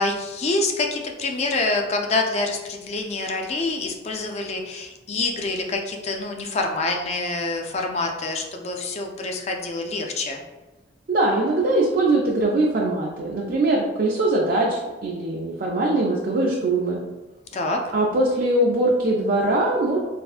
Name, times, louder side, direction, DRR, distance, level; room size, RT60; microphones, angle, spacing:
voice 1, 0.0-10.4 17.5-17.8, left 3 dB, 35° left, 3 dB, 0.3 m, -26 dB
voice 2, 11.1-17.0 17.9-20.0, right 2 dB, 50° right, -3 dB, 0.4 m, -21 dB
3.4 x 2.5 x 2.4 m, 1.2 s
head